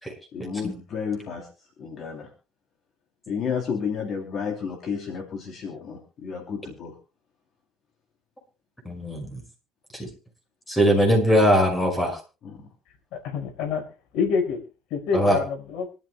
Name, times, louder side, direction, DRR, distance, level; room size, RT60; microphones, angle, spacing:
voice 1, 0.3-1.5 1.8-2.3 3.3-7.0 12.4-12.7, left 6 dB, 40° left, 3 dB, 2.8 m, -31 dB
voice 2, 8.8-9.4 9.9-10.1 10.7-12.2 15.1-15.4, equal, 10° left, 4 dB, 5.6 m, -21 dB
voice 3, 13.1-13.8 14.1-14.6 14.9-15.9, left 5 dB, 65° left, 5 dB, 4.7 m, -26 dB
25.0 x 12.5 x 2.2 m, 0.32 s
cardioid pair, 150°, 0 cm